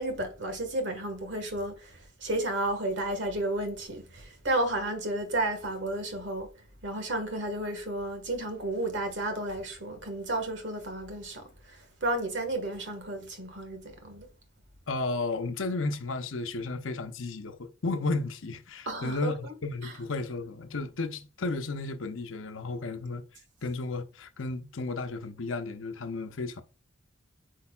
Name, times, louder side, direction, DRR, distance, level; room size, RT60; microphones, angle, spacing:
voice 1, 0.0-6.5 6.8-14.3 18.8-19.5 19.8-19.9, right 1 dB, 65° right, 1.6 m, -32 dB
voice 2, 14.9-23.2 23.6-26.6, left 3 dB, 85° left, 0.8 m, -33 dB
8.7 x 4.6 x 2.4 m
head